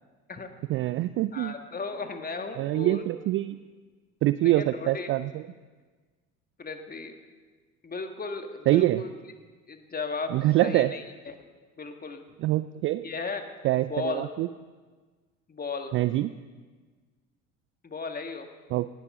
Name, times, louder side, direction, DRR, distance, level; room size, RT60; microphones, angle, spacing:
voice 1, 0.7-1.5 2.6-3.6 4.2-5.4 8.7-9.0 10.3-11.0 12.4-13.1 13.6-14.5 15.9-16.3 18.7-18.9, right 16 dB, 30° right, 15 dB, 0.4 m, -25 dB
voice 2, 1.3-3.1 4.4-5.1 6.6-7.1 7.8-9.1 9.7-11.4 11.8-12.2 13.0-14.3 15.5-15.9 17.8-18.5, left 4 dB, 20° left, 6 dB, 1.8 m, -35 dB
19.0 x 15.0 x 3.8 m, 1.4 s
figure-of-eight pair, 65°, 43 cm